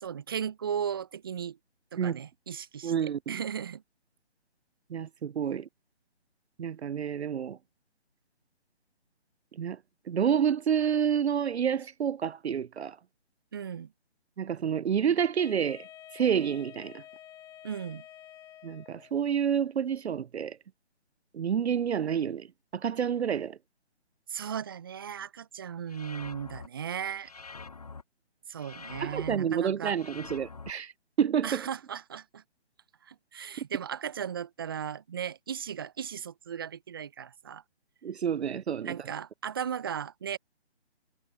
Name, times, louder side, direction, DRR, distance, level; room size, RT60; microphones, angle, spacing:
voice 1, 0.0-1.6 1.9-3.8 13.5-13.9 17.6-18.0 24.3-27.3 28.5-30.0 31.4-32.4 33.0-37.6 38.8-40.4, right 8 dB, 20° right, 0.7 m, -36 dB
voice 2, 2.8-3.4 4.9-5.7 6.6-7.6 9.5-9.8 10.1-13.0 14.4-15.9 16.1-17.0 18.6-20.6 21.3-22.5 22.7-23.6 29.0-30.9 31.2-31.7 38.0-39.1, right 8 dB, 70° right, 0.5 m, -29 dB
Wind instrument woodwind instrument, 15.4-19.2, left 12 dB, 10° left, 3.0 m, -50 dB
sound 1, 25.9-26.7 27.2-28.0 28.6-29.4 29.9-30.7, left 4 dB, 40° left, 0.4 m, -45 dB
figure-of-eight pair, 145°, 33 cm